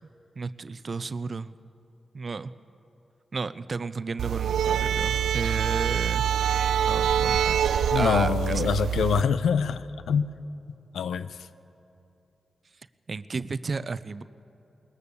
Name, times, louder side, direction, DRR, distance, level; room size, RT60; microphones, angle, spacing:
voice 1, 0.4-1.5 2.1-2.5 3.3-6.3 6.9-8.7 13.1-14.2, right 4 dB, 50° right, 14 dB, 0.6 m, -32 dB
sound 1, 4.2-9.2, right 9 dB, 90° right, 0.4 m, -25 dB
voice 2, 7.9-10.3 10.9-11.3, left 7 dB, 90° left, 14 dB, 0.6 m, -25 dB
21.0 x 19.5 x 6.9 m, 2.9 s
cardioid pair, 55°, 0 cm